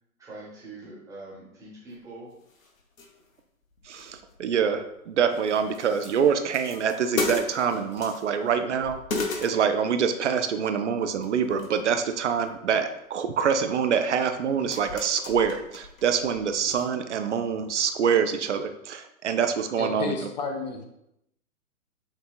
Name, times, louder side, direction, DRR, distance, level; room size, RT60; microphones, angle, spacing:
voice 1, 0.2-2.3, right 2 dB, 5° right, -7 dB, 1.3 m, -43 dB
sound 1, 2.0-2.1 2.4-3.4 3.7-5.0 5.3-8.5 8.8-10.2 11.0-11.8 12.2-12.6 13.6-13.7 14.3-16.9 17.1-17.2 17.7-17.9, left 3 dB, 65° left, 0.8 m, -36 dB
voice 2, 3.9-9.0 9.4-20.3, right 7 dB, 55° right, 8 dB, 0.5 m, -25 dB
voice 3, 19.8-20.8, left 4 dB, 30° left, 3 dB, 0.5 m, -32 dB
5.9 x 2.8 x 2.4 m, 0.81 s
figure-of-eight pair, 115°, 43 cm